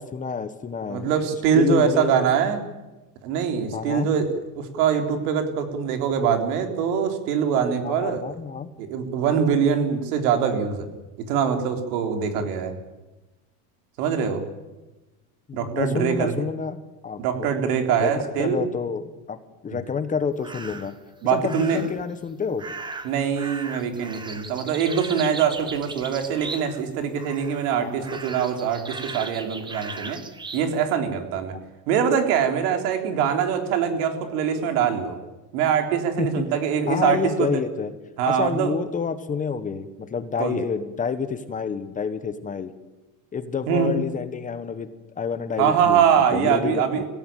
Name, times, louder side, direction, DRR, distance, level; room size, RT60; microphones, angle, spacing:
voice 1, 0.0-1.1 1.5-2.2 3.7-4.1 7.8-8.7 15.5-17.5 18.0-19.4 19.6-20.9 21.3-22.6 27.8-28.1 36.2-36.3 36.9-37.9 38.3-42.7 43.3-44.9 45.2-46.0 46.3-47.1, left 6 dB, 15° left, 11 dB, 1.1 m, -28 dB
voice 2, 0.9-2.6 3.2-8.2 8.8-10.9 11.3-12.7 14.0-14.4 15.5-16.3 17.2-18.6 19.7-19.8 21.2-21.8 23.0-30.2 30.5-31.5 31.9-35.2 35.5-37.6 38.2-38.7 40.4-40.5 43.7-43.9 45.6-47.0, right 7 dB, 75° right, 5 dB, 3.8 m, -23 dB
sound 1, 20.4-21.0 21.4-22.0 22.6-26.9 27.2-27.7 28.0-30.7, right 3 dB, 10° right, 1.2 m, -37 dB
25.5 x 16.5 x 9.1 m, 1.1 s
cardioid pair, 160°, 46 cm